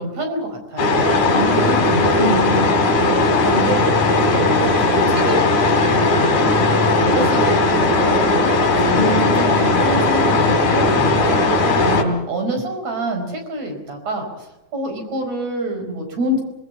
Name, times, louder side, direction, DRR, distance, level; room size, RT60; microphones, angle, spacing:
voice 1, 0.0-1.3 1.9-2.1 3.0-3.9 4.3-6.4 6.6-7.6 7.9-9.3 9.6-11.5 11.8-14.5 14.7-16.4, right 1 dB, 60° right, 4 dB, 5.9 m, -26 dB
sound 1, 0.8-12.0, left 2 dB, 80° left, 4.8 m, -17 dB
voice 2, 1.3-2.8 9.0-9.5, equal, 35° left, 4 dB, 3.4 m, -24 dB
26.5 x 19.5 x 7.2 m, 0.91 s
omnidirectional pair, 3.5 m